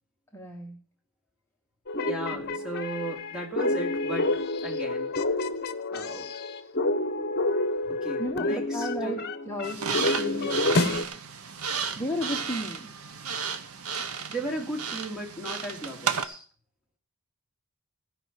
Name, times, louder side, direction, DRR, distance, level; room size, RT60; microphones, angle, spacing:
voice 1, 0.3-0.8 2.3-2.6 8.2-10.9 12.0-12.9, left 1 dB, 10° left, 1 dB, 1.1 m, -34 dB
sound 1, 1.9-11.0, left 2 dB, 50° left, 0.9 m, -28 dB
voice 2, 2.0-5.1 5.9-6.3 7.9-9.2 13.9-16.4, right 1 dB, 5° right, 0 dB, 2.6 m, -36 dB
sound 2, 9.6-16.3, right 6 dB, 85° right, 1.1 m, -33 dB
16.0 x 5.4 x 7.3 m, 0.40 s
head